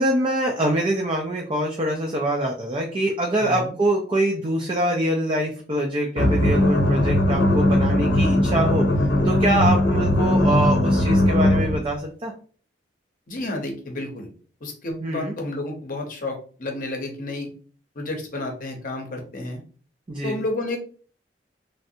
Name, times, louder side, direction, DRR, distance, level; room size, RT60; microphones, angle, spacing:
voice 1, 0.0-8.9 9.2-12.3 15.0-15.3 20.1-20.4, right 1 dB, 30° right, 0 dB, 0.4 m, -24 dB
voice 2, 3.4-3.7 13.3-14.3 14.6-17.5 17.9-19.6 20.2-20.8, left 2 dB, 50° left, 2 dB, 0.7 m, -31 dB
sound 1, 6.2-11.8, left 1 dB, 85° left, 0.6 m, -19 dB
3.2 x 2.5 x 2.7 m, 0.42 s
head